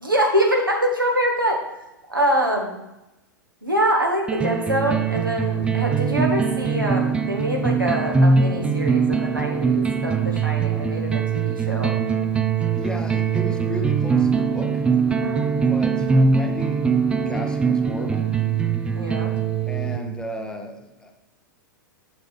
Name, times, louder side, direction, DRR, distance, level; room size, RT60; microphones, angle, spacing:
voice 1, 0.0-1.6 2.1-2.8 3.6-11.9 15.1-15.5 18.9-19.3, right 1 dB, 90° right, 0 dB, 1.4 m, -24 dB
sound 1, 4.3-20.2, right 5 dB, 10° right, 0.3 m, -22 dB
voice 2, 12.7-14.9 15.7-16.9 17.2-18.3 19.7-21.1, left 1 dB, 5° left, 4 dB, 0.7 m, -34 dB
7.1 x 6.6 x 3.2 m, 0.95 s
figure-of-eight pair, 95°, 11 cm